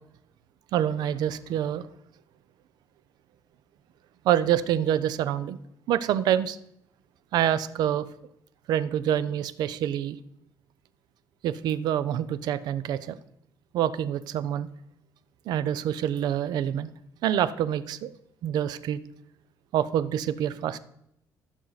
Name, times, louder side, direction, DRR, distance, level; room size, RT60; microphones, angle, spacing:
voice 1, 0.7-1.8 4.2-5.6 5.9-6.6 7.3-8.1 8.7-10.2 11.4-13.2 13.7-14.7 15.5-16.9 17.2-18.1 18.4-19.0 19.7-20.8, right 10 dB, 70° right, 15 dB, 0.6 m, -26 dB
14.5 x 6.3 x 4.0 m, 0.77 s
cardioid pair, 130°, 7 cm